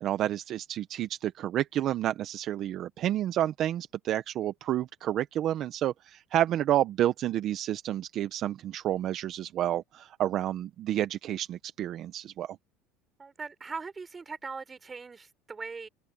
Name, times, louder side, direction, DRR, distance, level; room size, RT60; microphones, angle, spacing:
voice 1, 0.0-12.6, right 12 dB, 45° right, 1.0 m, -30 dB
voice 2, 13.2-15.9, right 4 dB, 20° right, 5.0 m, -40 dB
supercardioid pair, 125°, 0 cm